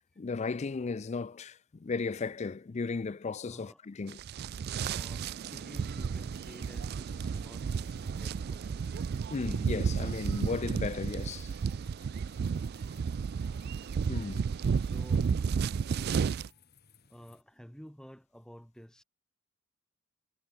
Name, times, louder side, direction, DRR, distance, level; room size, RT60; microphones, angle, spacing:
voice 1, 0.2-4.2 9.3-11.5 14.1-14.5, left 4 dB, 35° left, 0.4 m, -35 dB
voice 2, 3.5-3.8 4.8-8.9 14.2-15.3 16.5-16.6 17.0-19.0, equal, 5° left, 1.7 m, -52 dB
sound 1, 4.1-16.5, right 6 dB, 50° right, 0.3 m, -32 dB
sound 2, 5.5-17.4, left 6 dB, 50° left, 7.3 m, -62 dB
head